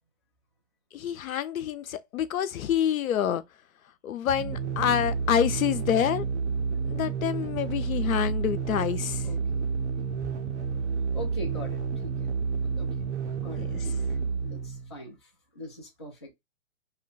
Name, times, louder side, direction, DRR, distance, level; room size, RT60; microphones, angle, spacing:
voice 1, 0.9-3.4 4.0-6.2 6.9-9.3 13.6-13.7, left 9 dB, 90° left, 0.6 m, -27 dB
sound 1, 4.3-15.0, right 5 dB, 60° right, 0.5 m, -30 dB
voice 2, 9.2-9.7 10.1-10.2 11.1-12.3 12.6-12.9 13.1-14.2 14.4-16.3, equal, 20° left, 0.4 m, -42 dB
2.8 x 2.1 x 3.8 m
hypercardioid pair, 165°, 40 cm